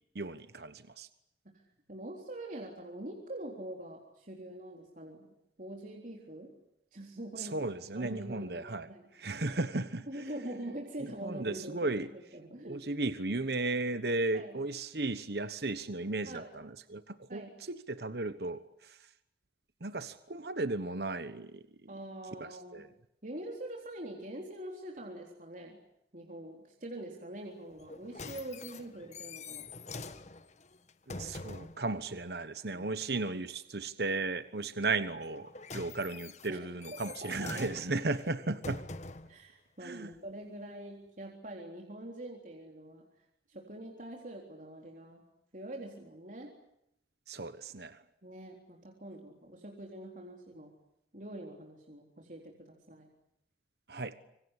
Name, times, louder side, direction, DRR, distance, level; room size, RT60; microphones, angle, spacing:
voice 1, 0.1-1.1 7.4-8.9 9.1-10.2 11.2-12.1 12.6-19.1 19.8-21.9 22.4-22.9 31.1-38.8 39.8-40.1 47.3-48.0 53.9-54.2, right 2 dB, 65° right, 12 dB, 1.2 m, -35 dB
voice 2, 1.9-6.5 6.9-7.6 7.9-8.5 8.9-9.1 10.1-12.8 14.3-14.6 16.3-16.5 17.3-17.6 21.9-22.8 23.2-25.8 26.1-29.7 32.7-33.0 36.5-36.7 37.1-37.7 39.3-43.1 43.5-45.2 45.5-46.6 48.2-50.7 51.1-53.1, right 1 dB, 50° right, 0 dB, 3.8 m, -44 dB
sound 1, 27.8-31.8 35.2-39.4 40.1-40.2, left 3 dB, 40° left, 1.4 m, -45 dB
26.5 x 25.0 x 8.2 m, 0.79 s
head